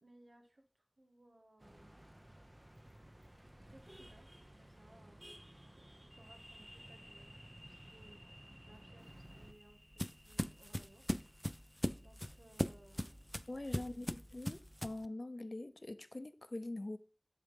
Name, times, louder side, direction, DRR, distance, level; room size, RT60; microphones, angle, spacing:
voice 1, 0.0-2.1 3.7-4.3 4.6-5.3 5.8-7.3 7.7-8.2 8.7-9.8 10.1-11.1 12.0-13.3 13.7-14.1, right 1 dB, 90° right, 1.4 m, -64 dB
sound 1, 1.6-9.5, right 1 dB, 30° right, 0.8 m, -57 dB
sound 2, 6.1-13.6, equal, 5° right, 0.9 m, -61 dB
sound 3, 9.0-15.1, equal, 10° left, 0.4 m, -40 dB
voice 2, 13.5-14.1 14.3-17.0, left 2 dB, 65° left, 0.6 m, -43 dB
10.0 x 3.8 x 5.3 m
wide cardioid pair, 40°, 0 cm